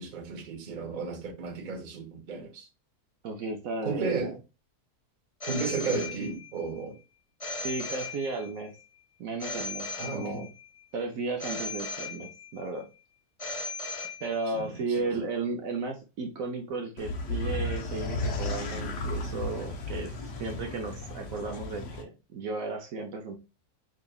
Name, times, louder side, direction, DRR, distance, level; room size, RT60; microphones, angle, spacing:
voice 1, 0.0-2.7 3.8-4.3 5.4-6.9 10.0-10.4 14.5-14.6, right 4 dB, 40° right, 0.8 m, -33 dB
voice 2, 3.2-4.4 7.6-8.7 9.2-10.5 10.9-12.9 14.2-23.4, right 3 dB, 65° right, 1.0 m, -34 dB
Telephone, 5.4-6.7 7.4-8.7 9.4-10.7 11.4-12.7 13.4-14.6, left 3 dB, 35° left, 0.5 m, -37 dB
sound 1, 17.0-22.0, left 2 dB, 60° left, 1.0 m, -34 dB
5.0 x 2.8 x 2.3 m
omnidirectional pair, 1.6 m